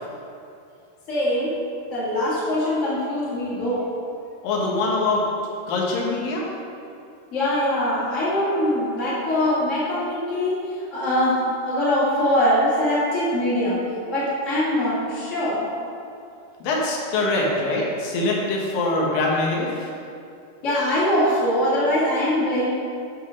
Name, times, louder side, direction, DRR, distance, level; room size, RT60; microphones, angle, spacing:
voice 1, 1.1-1.5 1.9-3.9 7.3-13.8 14.1-15.7 20.6-22.7, left 1 dB, 25° left, -12 dB, 1.8 m, -22 dB
voice 2, 4.4-5.2 5.7-6.5 16.6-19.9, left 2 dB, 65° left, -2 dB, 2.8 m, -23 dB
8.1 x 5.4 x 6.4 m, 2.5 s
omnidirectional pair, 4.6 m